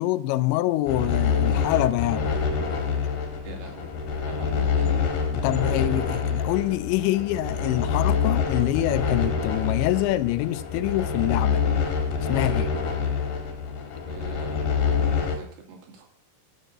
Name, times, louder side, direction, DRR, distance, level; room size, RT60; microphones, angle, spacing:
voice 1, 0.0-2.3 5.3-11.6 12.3-12.7, left 16 dB, 90° left, 2.9 m, -25 dB
sound 1, 0.9-15.4, left 6 dB, 60° left, 3.0 m, -26 dB
voice 2, 3.4-3.9 4.2-5.1 13.9-16.1, right 4 dB, 70° right, 4.1 m, -44 dB
13.5 x 6.9 x 6.6 m
omnidirectional pair, 5.1 m